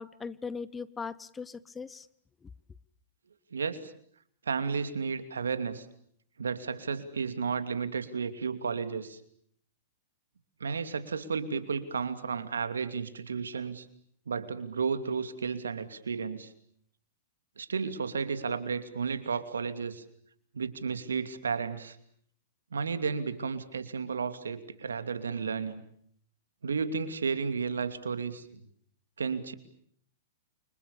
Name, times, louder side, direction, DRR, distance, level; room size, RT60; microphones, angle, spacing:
voice 1, 0.0-2.1, left 5 dB, 15° left, 18 dB, 1.1 m, -39 dB
voice 2, 3.5-3.9 4.5-5.9 6.4-9.2 10.6-13.9 14.3-16.5 17.6-20.0 20.5-22.0 22.7-25.8 26.6-28.5 29.2-29.5, right 5 dB, 85° right, 11 dB, 2.7 m, -33 dB
29.5 x 25.5 x 7.0 m, 0.65 s
hypercardioid pair, 115°, 0 cm